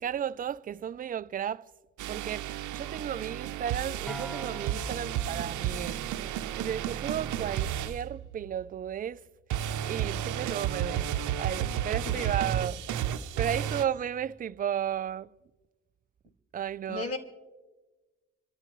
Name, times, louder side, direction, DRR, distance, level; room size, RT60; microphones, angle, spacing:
voice 1, 0.0-1.7 2.1-6.1 6.5-9.3 9.9-11.1 11.4-12.8 13.4-15.3 16.5-17.1, right 9 dB, 30° right, 0.4 m, -34 dB
sound 1, 2.0-8.7 9.5-13.8, right 10 dB, 80° right, 0.7 m, -32 dB
sound 2, 4.1-7.7, left 1 dB, ahead, 0.8 m, -46 dB
voice 2, 12.0-12.4 16.9-17.2, left 4 dB, 50° left, 2.1 m, -35 dB
27.0 x 13.5 x 3.1 m
cardioid pair, 90°, 30 cm